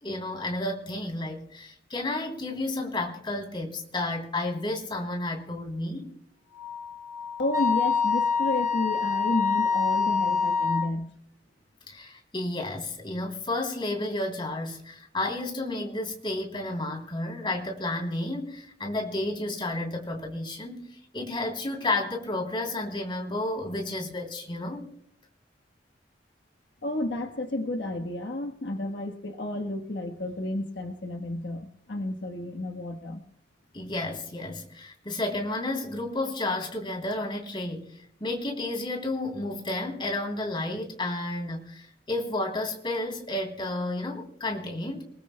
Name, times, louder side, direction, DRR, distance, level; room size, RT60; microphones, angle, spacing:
voice 1, 0.0-6.1 11.9-24.9 33.7-37.9 38.2-45.0, left 2 dB, 25° left, 3.2 m, -31 dB
Wind instrument woodwind instrument, 6.6-10.9, left 5 dB, 20° right, 1.8 m, -26 dB
voice 2, 7.4-11.1 26.8-33.2, left 2 dB, 70° left, 1.3 m, -31 dB
28.0 x 20.0 x 2.2 m
head